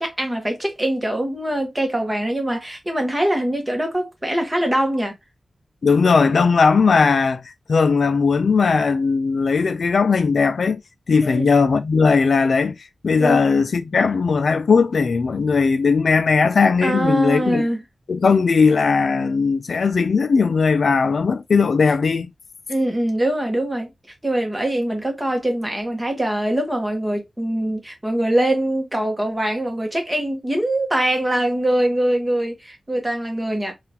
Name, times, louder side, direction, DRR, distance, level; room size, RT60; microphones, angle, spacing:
voice 1, 0.0-5.1 11.2-11.5 13.2-13.4 16.8-17.8 22.7-23.9 24.2-33.7, right 1 dB, 15° right, 1.2 m, -23 dB
voice 2, 5.8-7.4 7.7-10.8 11.1-12.8 13.0-17.7 18.1-22.3, left 5 dB, 70° left, 0.4 m, -18 dB
3.7 x 2.5 x 2.8 m
wide cardioid pair, 110°, 0 cm